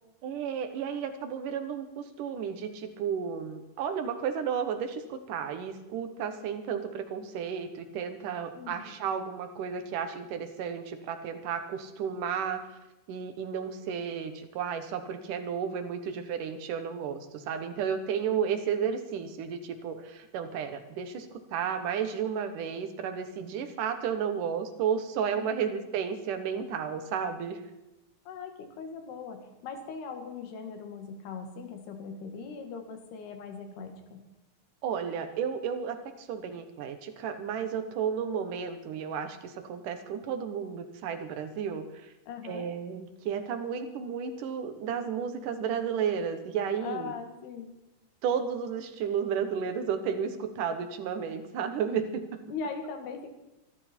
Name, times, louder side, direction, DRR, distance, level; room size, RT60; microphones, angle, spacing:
voice 1, 0.2-12.6 13.1-27.6 34.8-42.1 42.4-47.1 48.2-52.2, right 7 dB, 65° right, 8 dB, 2.5 m, -33 dB
voice 2, 8.6-9.1 25.4-25.7 28.3-34.2 42.3-42.7 46.8-47.7 52.5-53.3, left 5 dB, 85° left, 5 dB, 3.9 m, -40 dB
24.5 x 12.5 x 4.5 m, 0.98 s
omnidirectional pair, 4.5 m